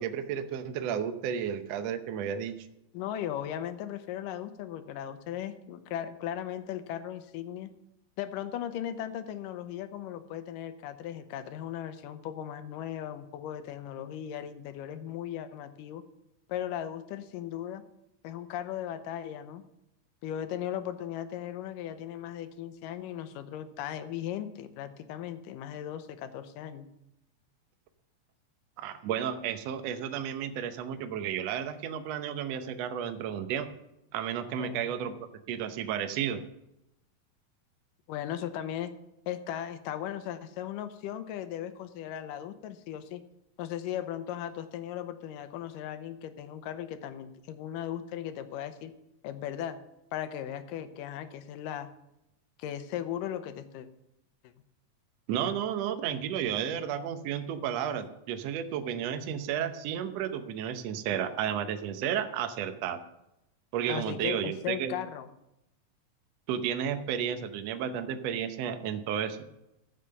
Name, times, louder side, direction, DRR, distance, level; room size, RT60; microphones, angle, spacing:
voice 1, 0.0-2.6 28.8-33.7 34.1-35.1 35.5-36.4 55.3-63.0 63.7-64.9 66.5-69.4, right 9 dB, 70° right, 8 dB, 1.6 m, -32 dB
voice 2, 2.9-7.7 8.2-16.0 16.5-17.8 18.2-19.6 20.2-26.9 34.6-34.9 38.1-38.9 39.3-43.2 43.6-48.9 49.2-49.8 50.1-51.9 52.6-53.9 63.9-65.3, left 10 dB, 80° left, 10 dB, 2.4 m, -37 dB
15.0 x 5.8 x 6.7 m, 0.87 s
omnidirectional pair, 3.9 m